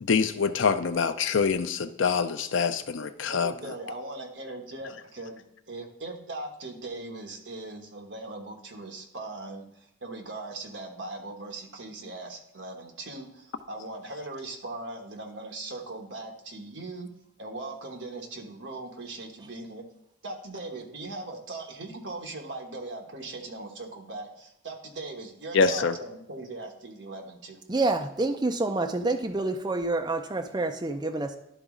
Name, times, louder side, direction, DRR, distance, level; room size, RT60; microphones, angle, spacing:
voice 1, 0.0-3.7 25.5-25.9, left 5 dB, 75° left, 10 dB, 0.5 m, -25 dB
voice 2, 3.3-17.1 17.4-19.8 20.2-27.6, right 2 dB, 65° right, 2 dB, 1.2 m, -39 dB
voice 3, 27.7-31.4, right 2 dB, 20° right, 5 dB, 0.5 m, -28 dB
11.5 x 4.0 x 3.7 m, 0.79 s
head